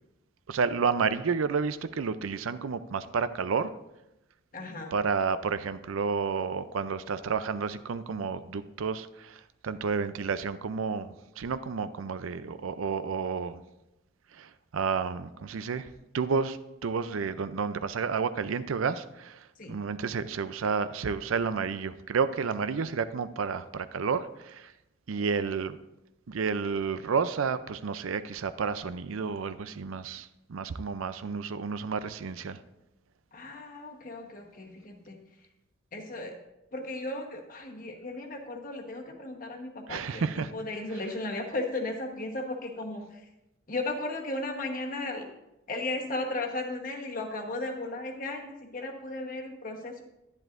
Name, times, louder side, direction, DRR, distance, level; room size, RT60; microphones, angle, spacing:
voice 1, 0.5-3.7 4.9-13.6 14.3-15.9 16.1-24.7 25.1-25.8 26.3-32.6 39.9-40.5, right 5 dB, 85° right, 13 dB, 0.5 m, -31 dB
voice 2, 4.5-4.9 19.6-19.7 33.3-35.2 35.9-36.3 36.7-43.0 43.7-45.3 45.7-50.0, left 2 dB, 40° left, 2 dB, 1.2 m, -35 dB
11.0 x 10.5 x 2.5 m, 0.92 s
head